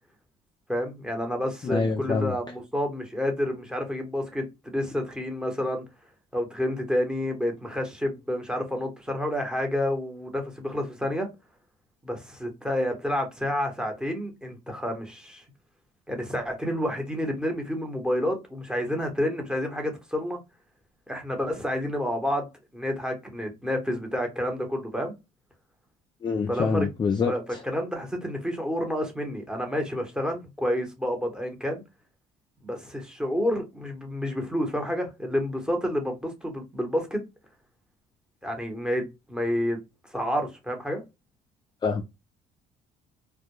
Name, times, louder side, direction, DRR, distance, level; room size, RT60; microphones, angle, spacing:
voice 1, 0.7-5.8 6.3-11.3 12.0-15.4 16.1-20.4 21.1-22.5 22.7-25.1 26.5-26.9 27.3-31.8 32.6-37.2 38.4-39.8 40.1-41.0, equal, 5° right, 0.9 m, -29 dB
voice 2, 1.6-2.3 26.2-27.6 41.8-42.0, left 5 dB, 25° left, 0.4 m, -26 dB
2.2 x 2.1 x 2.9 m
cardioid pair, 110°, 17 cm